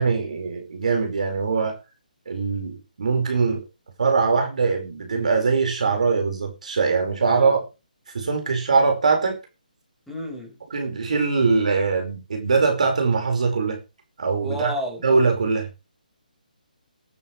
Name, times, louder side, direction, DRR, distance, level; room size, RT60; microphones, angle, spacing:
voice 1, 0.0-1.8 2.3-3.6 4.0-7.6 8.1-9.4 10.7-13.8 14.2-14.7 15.0-15.7, right 4 dB, 55° right, 4.8 m, -22 dB
voice 2, 10.1-10.6 14.4-15.0, equal, ahead, 5.1 m, -31 dB
19.5 x 11.0 x 3.3 m
figure-of-eight pair, 140°, 5 cm